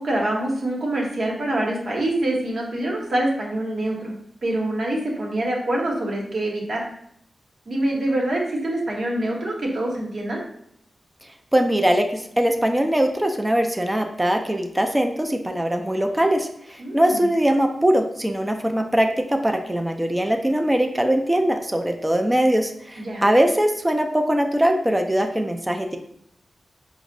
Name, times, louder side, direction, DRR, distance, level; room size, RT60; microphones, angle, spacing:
voice 1, 0.0-4.1 4.4-6.9 7.7-10.4 16.8-17.3 23.0-23.2, right 1 dB, 70° right, -2 dB, 0.9 m, -25 dB
voice 2, 11.5-26.0, right 1 dB, 15° right, 4 dB, 0.4 m, -21 dB
4.9 x 2.0 x 2.5 m, 0.72 s
cardioid pair, 50°, 0 cm